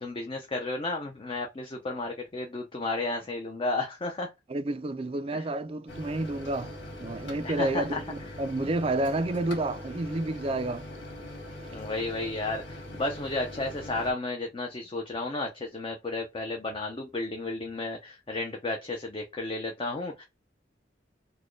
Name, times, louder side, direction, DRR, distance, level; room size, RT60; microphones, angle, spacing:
voice 1, 0.0-4.3 5.3-5.4 7.4-8.0 11.7-20.3, left 2 dB, 30° left, 0.5 m, -33 dB
voice 2, 4.5-6.7 7.0-10.9 11.6-11.8, right 2 dB, 30° right, 0.4 m, -30 dB
Microwave oven, 5.9-14.1, left 1 dB, 70° left, 2.0 m, -42 dB
4.1 x 2.2 x 3.1 m
head